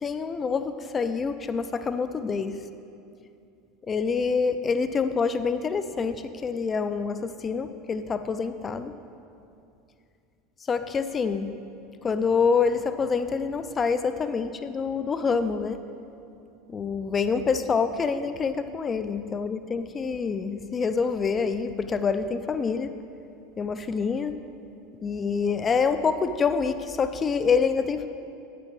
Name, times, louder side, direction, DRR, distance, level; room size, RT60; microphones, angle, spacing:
voice 1, 0.0-2.6 3.9-8.9 10.7-11.5 12.0-15.8 16.7-22.9 23.6-24.4 25.0-28.1, left 5 dB, 25° left, 11 dB, 0.5 m, -26 dB
8.8 x 7.0 x 4.5 m, 2.6 s
figure-of-eight pair, 75°, 0 cm